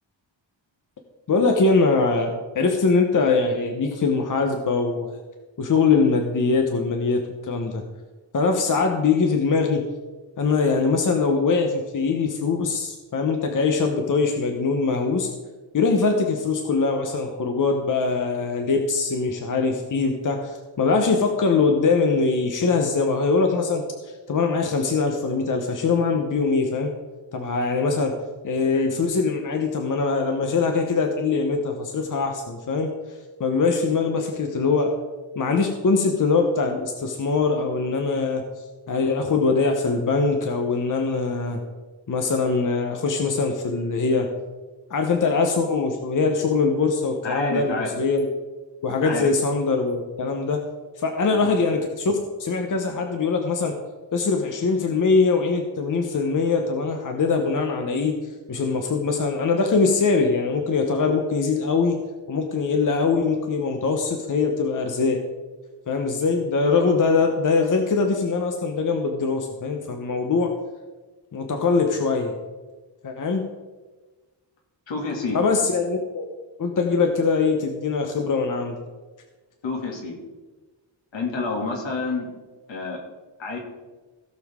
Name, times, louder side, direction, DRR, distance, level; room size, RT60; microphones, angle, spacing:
voice 1, 1.3-5.1 5.6-7.8 8.3-9.8 10.4-15.3 15.7-26.9 27.3-28.2 28.4-32.9 33.4-34.9 35.3-41.6 42.1-44.3 44.9-48.3 48.8-50.6 51.0-53.8 54.1-58.2 58.5-62.0 62.3-65.2 65.9-70.5 71.3-72.3 73.0-73.4 75.3-76.2 76.6-78.8, left 4 dB, 45° left, 4 dB, 1.0 m, -22 dB
voice 2, 47.2-47.9 49.0-49.3 51.3-51.5 74.9-75.4 79.6-80.2 81.1-82.3 82.7-83.0 83.4-83.6, left 3 dB, 75° left, 0 dB, 2.5 m, -28 dB
16.5 x 6.9 x 3.6 m, 1.3 s
wide cardioid pair, 165°, 45 cm